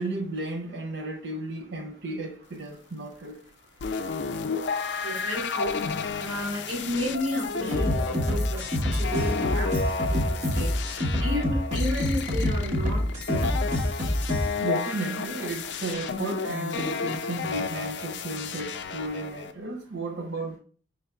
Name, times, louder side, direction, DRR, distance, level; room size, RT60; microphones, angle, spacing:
voice 1, 0.0-3.5 5.0-5.1 14.6-20.6, right 2 dB, 65° right, 0.6 m, -34 dB
sound 1, 3.8-19.5, left 5 dB, 65° left, 0.4 m, -32 dB
voice 2, 5.0-5.8 6.2-8.6 9.0-10.2 10.5-10.7 11.2-13.0 13.3-13.4, equal, 80° right, 1.9 m, -32 dB
sound 2, 7.7-14.5, left 1 dB, 40° right, 1.1 m, -26 dB
5.4 x 3.3 x 2.3 m
head